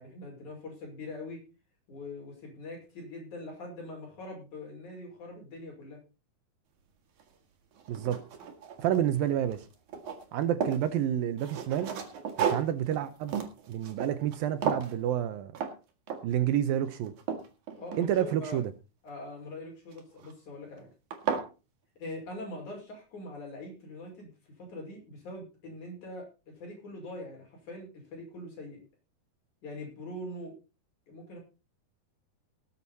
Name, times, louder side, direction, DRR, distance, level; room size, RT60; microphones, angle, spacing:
voice 1, 0.0-1.4 1.9-6.0 17.7-18.6 19.0-20.9 22.0-28.8 29.6-30.5 31.1-31.4, left 1 dB, 50° left, 0 dB, 7.1 m, -43 dB
sound 1, 7.2-7.3 7.8-9.2 9.5-10.9 11.4-14.4 14.6-15.0 15.5-15.8 16.1-16.4 16.9-18.4 19.9-20.3 20.8-20.9 21.1-21.5, right 7 dB, 55° right, 3.3 m, -34 dB
voice 2, 7.9-8.2 8.8-9.7 10.3-12.0 12.4-13.4 13.7-15.5 16.2-17.1 18.0-18.7, right 11 dB, 75° right, 11 dB, 2.5 m, -29 dB
19.0 x 8.9 x 4.1 m, 0.31 s
omnidirectional pair, 4.5 m